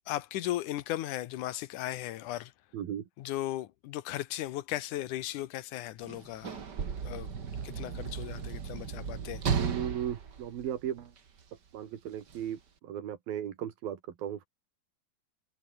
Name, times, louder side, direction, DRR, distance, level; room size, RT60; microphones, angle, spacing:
voice 1, 0.1-2.5 3.2-6.6 7.0-7.3 7.6-9.4, left 14 dB, 70° left, 2.1 m, -36 dB
voice 2, 2.7-3.1 9.5-11.1 11.7-14.5, right 10 dB, 75° right, 3.8 m, -36 dB
Sliding door / Slam, 6.0-11.4 12.3-12.4, right 6 dB, 40° right, 1.7 m, -35 dB
omnidirectional pair, 4.3 m